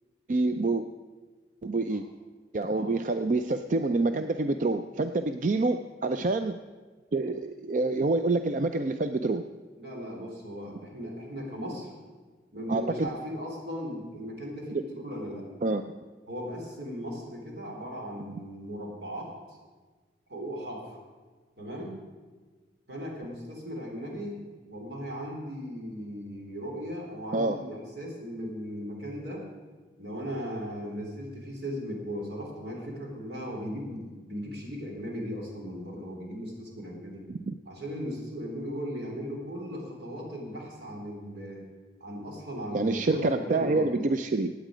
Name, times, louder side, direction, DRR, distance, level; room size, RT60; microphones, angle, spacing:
voice 1, 0.3-0.8 1.6-2.0 2.5-6.6 7.1-9.4 12.7-12.8 15.6-15.8 27.3-27.6 37.3-37.5 42.7-44.5, right 3 dB, 45° right, 9 dB, 0.4 m, -27 dB
voice 2, 9.8-11.9 12.5-15.5 16.3-19.3 20.3-21.0 21.6-22.0 22.9-29.5 30.0-37.2 37.7-41.7 42.0-43.9, equal, 75° right, -1 dB, 3.5 m, -37 dB
16.5 x 9.2 x 5.0 m, 1.4 s
head